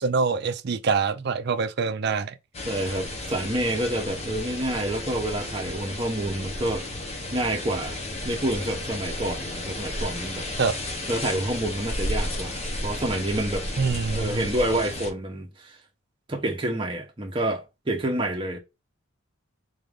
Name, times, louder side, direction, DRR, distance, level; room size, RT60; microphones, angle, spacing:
voice 1, 0.0-2.4 10.6-10.8 13.8-14.5, right 5 dB, 50° right, 0.4 m, -25 dB
sound 1, 2.5-15.1, left 1 dB, 30° left, 0.7 m, -33 dB
voice 2, 2.7-6.9 7.3-8.0 8.2-10.5 11.1-13.7 14.1-15.7 16.3-18.6, right 1 dB, 25° right, 0.7 m, -28 dB
4.0 x 2.5 x 3.4 m
head